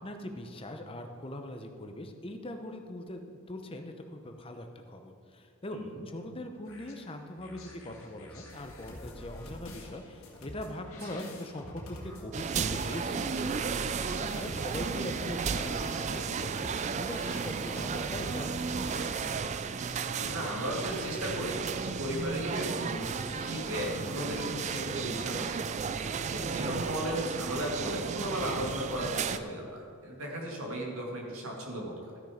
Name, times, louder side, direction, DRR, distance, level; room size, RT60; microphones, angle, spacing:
voice 1, 0.0-5.8 6.1-16.5 16.8-19.1, left 1 dB, 25° left, 5 dB, 0.8 m, -41 dB
voice 2, 5.7-6.0 11.0-11.1 20.1-25.6 26.3-32.2, equal, 70° right, -1 dB, 2.1 m, -36 dB
sound 1, 6.7-19.4, left 1 dB, 70° left, 2.0 m, -46 dB
sound 2, 12.3-29.4, right 5 dB, 30° right, 0.3 m, -34 dB
13.0 x 6.3 x 5.0 m, 2.3 s
head